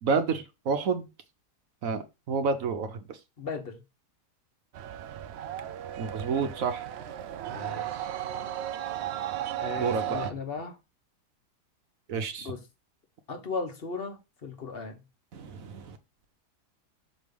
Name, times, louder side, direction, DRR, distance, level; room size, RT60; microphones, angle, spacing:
voice 1, 0.0-1.1 1.8-3.2 6.0-6.8 9.7-10.2 12.1-12.5 15.3-16.0, right 5 dB, 60° right, 1.1 m, -29 dB
voice 2, 3.4-3.8 7.5-8.0 9.6-10.8 12.4-12.6 13.3-14.9, left 4 dB, 40° left, 1.2 m, -36 dB
sound 1, 4.7-10.3, right 11 dB, 85° right, 0.5 m, -35 dB
6.2 x 3.2 x 5.1 m
omnidirectional pair, 1.7 m